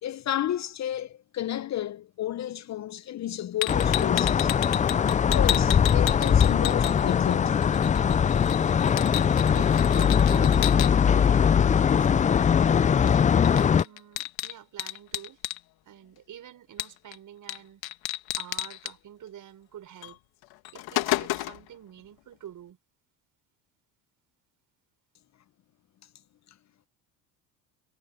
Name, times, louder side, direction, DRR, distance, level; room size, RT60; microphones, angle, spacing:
voice 1, 0.0-4.5 5.2-7.6, left 11 dB, 40° left, 0.8 m, -32 dB
sound 1, 3.6-7.3 7.6-10.9 13.1-13.2 13.4-15.6 16.8-17.2 17.5-17.6 17.8-18.9 20.0-20.1 20.5-21.7, left 16 dB, 65° left, 2.1 m, -32 dB
sound 2, 3.7-13.8, left 7 dB, 20° left, 0.4 m, -21 dB
voice 2, 8.1-8.5 9.3-12.6 13.4-15.4 15.9-17.8 18.3-20.2 20.7-22.8, right 10 dB, 50° right, 5.6 m, -47 dB
hypercardioid pair, 75°, 40 cm